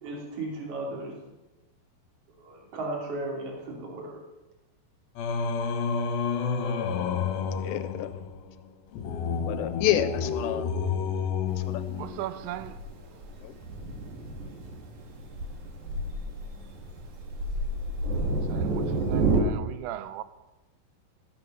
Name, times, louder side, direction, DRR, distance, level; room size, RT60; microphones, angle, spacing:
voice 1, 0.0-1.1 2.4-4.2, right 2 dB, 40° right, 3.1 m, -35 dB
Singing, 5.2-12.5, left 6 dB, 70° left, 2.5 m, -30 dB
voice 2, 7.6-8.1 9.5-10.7 11.7-12.0 13.4-13.5, left 12 dB, 85° left, 2.9 m, -29 dB
Thunder, 11.5-19.4, right 3 dB, 55° right, 2.4 m, -30 dB
voice 3, 12.0-12.8 18.5-20.2, right 13 dB, 80° right, 2.5 m, -37 dB
13.5 x 8.0 x 6.6 m
omnidirectional pair, 5.0 m